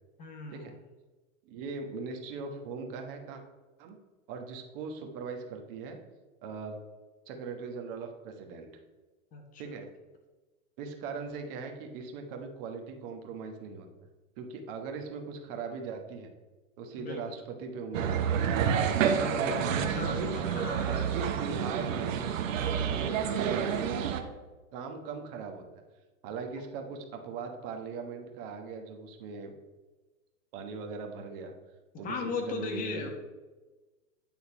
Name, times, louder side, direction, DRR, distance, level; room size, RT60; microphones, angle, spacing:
voice 1, 0.2-0.8 9.3-9.6 17.0-17.2 19.0-21.1 22.7-23.0 32.0-33.1, left 4 dB, 20° left, 3 dB, 1.1 m, -38 dB
voice 2, 1.4-3.4 3.8-4.0 4.3-6.0 6.4-6.8 7.3-8.7 9.6-9.9 10.8-13.9 14.4-16.3 16.8-18.6 19.4-19.6 20.2-20.4 20.8-22.2 22.6-24.0 24.7-25.6 26.2-29.5 30.5-31.5 32.0-33.1, right 4 dB, 40° right, 4 dB, 1.3 m, -39 dB
sound 1, 17.9-24.2, right 8 dB, 65° right, 0.9 m, -29 dB
9.0 x 3.9 x 4.8 m, 1.2 s
hypercardioid pair, 140°, 42 cm